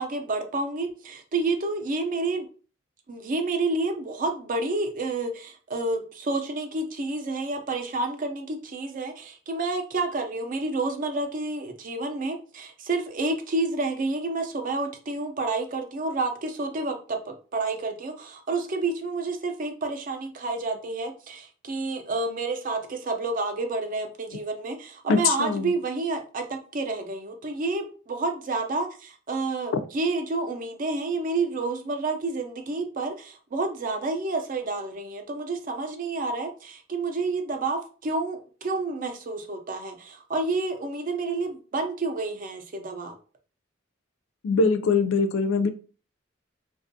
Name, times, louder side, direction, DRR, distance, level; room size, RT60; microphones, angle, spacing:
voice 1, 0.0-2.5 3.1-43.2, right 3 dB, 45° right, 5 dB, 0.4 m, -29 dB
voice 2, 25.1-25.7 44.4-45.7, left 4 dB, 75° left, 9 dB, 0.3 m, -22 dB
2.5 x 2.3 x 2.6 m, 0.38 s
head